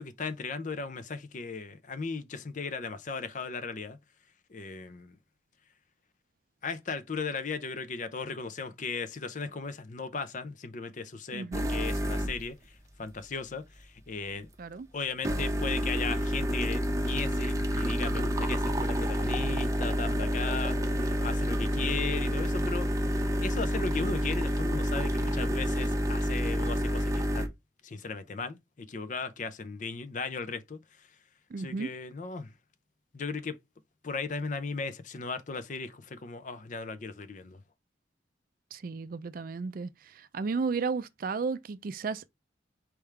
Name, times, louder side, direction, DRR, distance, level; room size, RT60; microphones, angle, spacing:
voice 1, 0.0-4.0 4.5-5.1 6.6-12.6 13.0-14.5 14.9-27.5 27.8-30.8 31.6-32.5 33.1-33.6 34.0-37.6, left 4 dB, 45° left, 0.5 m, -37 dB
voice 2, 11.3-11.7 14.6-14.9 31.5-31.9 38.7-42.3, right 4 dB, 50° right, 0.4 m, -33 dB
sound 1, 11.5-12.5 15.2-27.5, equal, 20° right, 0.7 m, -29 dB
4.6 x 3.5 x 3.2 m
head